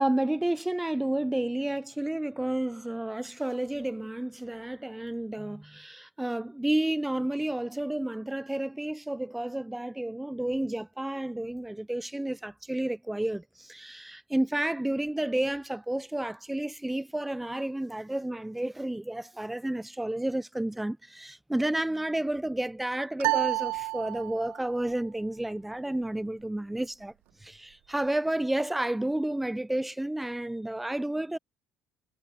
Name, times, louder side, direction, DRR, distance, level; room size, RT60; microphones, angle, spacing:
voice 1, 0.0-27.1 27.4-31.4, right 1 dB, 5° right, 0.3 m, -31 dB
sound 1, 23.2-24.7, right 22 dB, 80° right, 0.7 m, -29 dB
cardioid pair, 160°, 3 cm